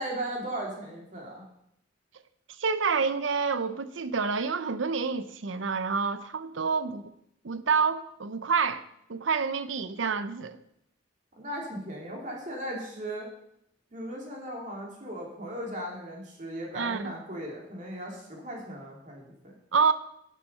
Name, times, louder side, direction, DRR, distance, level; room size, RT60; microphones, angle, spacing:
voice 1, 0.0-1.4 11.4-13.3 13.9-19.5, right 1 dB, 40° right, 2.9 m, -37 dB
voice 2, 2.6-7.0 7.4-8.8 9.1-10.6 16.7-17.0 19.7-19.9, right 5 dB, 85° right, 0.7 m, -28 dB
11.0 x 7.4 x 5.5 m
head